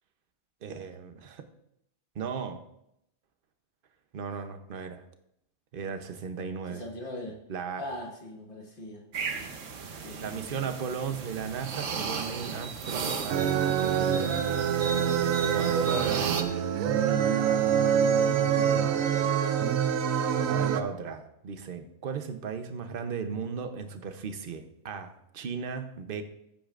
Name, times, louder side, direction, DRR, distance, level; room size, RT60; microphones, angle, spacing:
voice 1, 0.6-1.5 2.1-2.6 4.1-5.0 5.7-6.8 7.5-7.8 9.8-14.5 15.5-16.8 17.6-18.0 20.5-26.2, right 6 dB, 50° right, 7 dB, 0.9 m, -36 dB
voice 2, 6.7-7.4 7.8-9.0 10.0-10.6 18.5-18.7 19.1-19.3, left 1 dB, 40° left, 0 dB, 1.7 m, -41 dB
sound 1, 9.1-16.4, right 5 dB, 70° right, 1.3 m, -35 dB
sound 2, 13.3-20.8, right 8 dB, 85° right, 1.1 m, -25 dB
15.5 x 8.5 x 2.5 m, 0.79 s
omnidirectional pair, 1.4 m